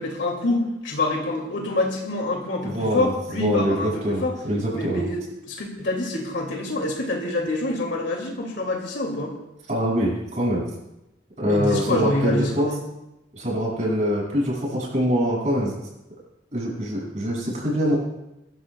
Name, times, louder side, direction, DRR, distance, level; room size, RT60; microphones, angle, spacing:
voice 1, 0.0-4.3 4.7-9.4 11.5-12.8, left 2 dB, 75° left, 0 dB, 2.2 m, -26 dB
voice 2, 2.6-5.1 9.7-10.7 11.4-12.7 13.3-15.7 16.5-18.0, equal, 40° right, -3 dB, 6.2 m, -24 dB
22.5 x 13.5 x 2.2 m, 0.92 s
head